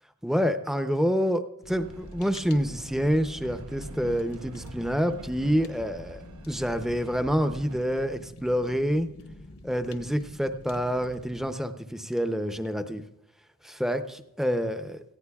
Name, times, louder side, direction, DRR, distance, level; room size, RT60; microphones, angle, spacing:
voice 1, 0.2-9.1 9.6-13.0 13.6-15.0, equal, ahead, 8 dB, 0.6 m, -27 dB
Fire, 1.6-11.5, left 2 dB, 70° left, 1.0 m, -48 dB
Train, 1.7-7.8, right 2 dB, 85° right, 0.7 m, -45 dB
18.0 x 15.0 x 2.3 m, 0.88 s
head